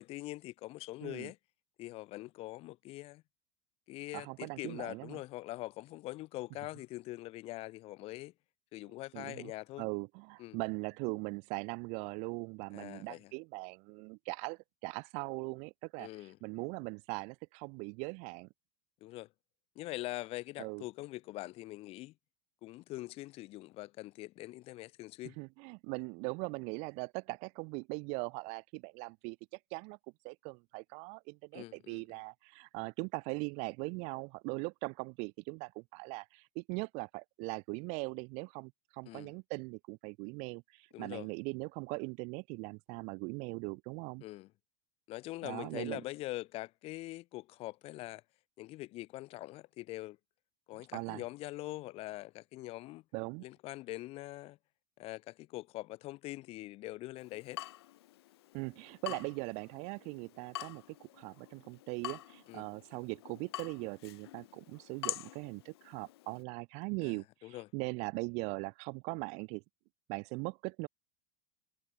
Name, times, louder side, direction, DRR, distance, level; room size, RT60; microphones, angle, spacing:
voice 1, 0.0-1.4 1.8-3.2 3.9-8.3 8.7-9.8 10.4-10.6 12.7-13.3 16.0-16.4 19.0-19.3 19.8-22.1 22.6-25.4 31.5-32.0 39.1-39.3 40.9-41.3 44.2-44.5 45.1-48.2 48.6-50.2 50.7-53.0 53.4-54.6 55.0-57.6 59.1-59.2 62.5-62.7 67.0-67.7, left 18 dB, 50° left, 2.4 m, -43 dB
voice 2, 4.1-5.2 9.1-9.5 9.8-16.1 16.4-18.5 20.6-20.8 25.4-29.4 29.7-30.0 30.2-44.2 45.4-46.0 50.9-51.2 53.1-53.4 58.5-69.6 70.1-70.9, right 32 dB, 60° right, 2.0 m, -40 dB
Water tap faucet / Drip, 57.2-66.4, left 16 dB, 80° left, 4.5 m, -46 dB
supercardioid pair, 115°, 13 cm